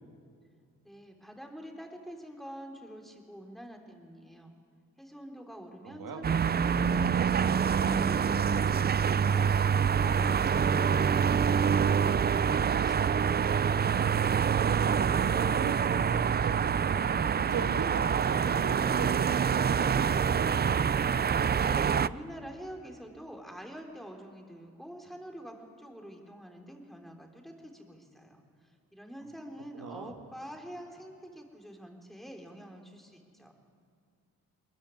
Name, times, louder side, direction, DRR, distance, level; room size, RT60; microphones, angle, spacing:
voice 1, 0.8-4.5 5.0-13.4 21.5-33.5, equal, ahead, 2 dB, 3.6 m, -46 dB
voice 2, 5.8-6.2 14.6-20.5 29.7-30.2, right 6 dB, 70° right, 4 dB, 1.8 m, -39 dB
sound 1, 6.2-22.1, right 7 dB, 30° right, 0.5 m, -26 dB
21.0 x 14.5 x 9.8 m, 2.4 s
supercardioid pair, 60°, 35 cm